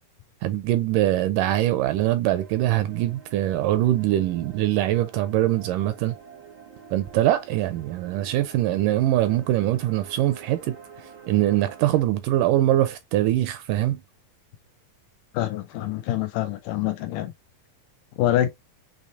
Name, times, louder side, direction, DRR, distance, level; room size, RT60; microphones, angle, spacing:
voice 1, 0.4-6.2 6.9-10.8 11.3-14.0, right 14 dB, 80° right, 2.0 m, -23 dB
sound 1, 2.3-12.0, right 7 dB, 40° right, 0.5 m, -47 dB
voice 2, 15.3-17.3 18.2-18.5, left 13 dB, 80° left, 2.0 m, -25 dB
6.4 x 3.0 x 2.6 m
omnidirectional pair, 4.0 m